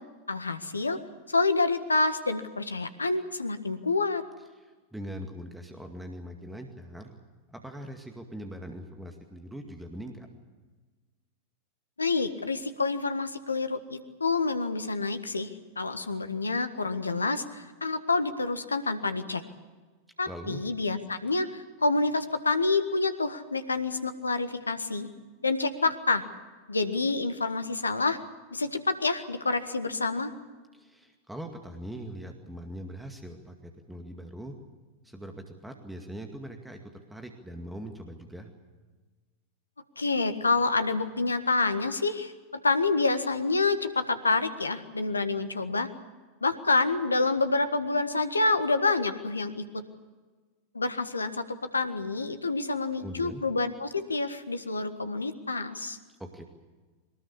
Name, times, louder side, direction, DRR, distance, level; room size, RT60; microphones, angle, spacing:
voice 1, 0.3-1.0 1.3-4.2 12.0-15.5 15.8-19.4 20.2-25.1 25.4-26.2 26.7-28.2 28.5-30.3 40.0-42.3 42.6-45.9 46.4-49.6 50.7-56.0, left 3 dB, 80° left, 10 dB, 1.6 m, -28 dB
voice 2, 4.6-7.1 7.5-10.3 20.3-20.6 30.7-34.5 35.0-38.5 52.9-53.4 56.2-56.4, equal, 5° right, 4 dB, 2.2 m, -41 dB
22.5 x 19.5 x 8.5 m, 1.3 s
figure-of-eight pair, 90°, 0 cm